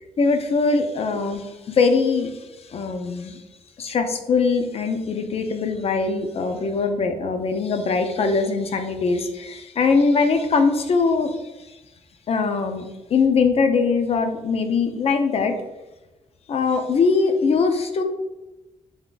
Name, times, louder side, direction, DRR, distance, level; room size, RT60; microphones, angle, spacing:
voice 1, 0.2-1.4 1.8-2.3 2.7-3.3 3.8-11.3 12.3-12.8 13.1-15.5 16.5-18.0, left 4 dB, 55° left, 7 dB, 0.5 m, -21 dB
3.5 x 2.5 x 3.7 m, 1.0 s
cardioid pair, 100°, 13 cm